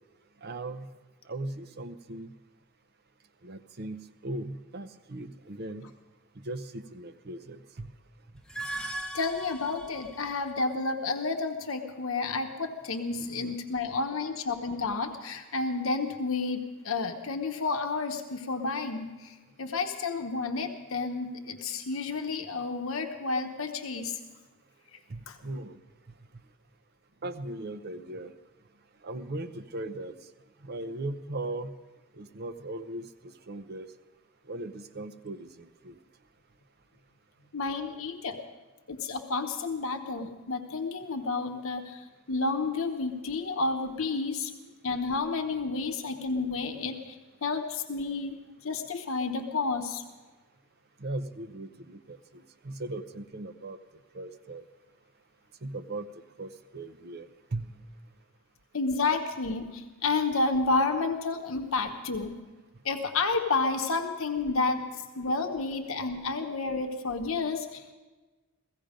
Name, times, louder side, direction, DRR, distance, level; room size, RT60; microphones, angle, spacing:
voice 1, 0.4-0.9 1.3-2.3 3.4-5.9 6.4-7.9 13.2-13.6 25.1-25.8 27.2-28.3 29.0-30.1 30.6-31.7 32.2-33.1 33.5-33.9 34.5-35.9 51.0-53.8 54.1-54.6 55.6-56.1 56.4-57.7, right 2 dB, 50° right, 11 dB, 0.7 m, -38 dB
sound 1, 8.3-10.6, right 2 dB, 5° left, 0.8 m, -39 dB
voice 2, 9.1-24.2 25.3-25.4 37.5-38.4 38.9-44.5 44.8-50.0 58.7-62.4 62.8-64.9 65.1-67.9, left 3 dB, 70° left, 5 dB, 1.1 m, -31 dB
16.5 x 15.5 x 5.1 m, 1.2 s
head